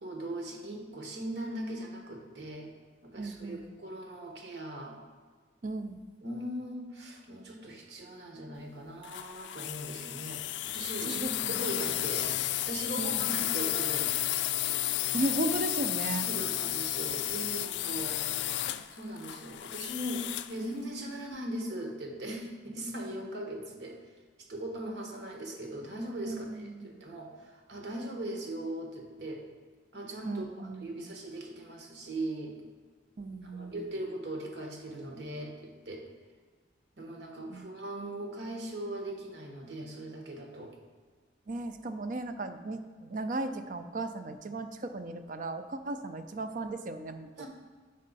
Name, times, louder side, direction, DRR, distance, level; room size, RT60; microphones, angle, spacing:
voice 1, 0.0-2.7 3.0-5.0 6.2-12.3 12.6-14.4 16.2-18.2 18.9-24.0 24.5-29.4 29.9-32.6 33.4-36.0 37.0-40.7 47.4-47.5, right 1 dB, 70° right, 1 dB, 1.2 m, -39 dB
voice 2, 3.2-3.8 5.6-6.0 11.0-11.9 13.0-13.4 15.1-16.3 22.9-23.1 26.3-27.0 30.2-31.1 33.2-33.9 37.5-37.7 41.5-47.5, right 2 dB, 45° right, 9 dB, 0.4 m, -36 dB
sound 1, 9.0-20.6, left 13 dB, 70° left, 0.3 m, -32 dB
6.4 x 5.4 x 4.0 m, 1.5 s
head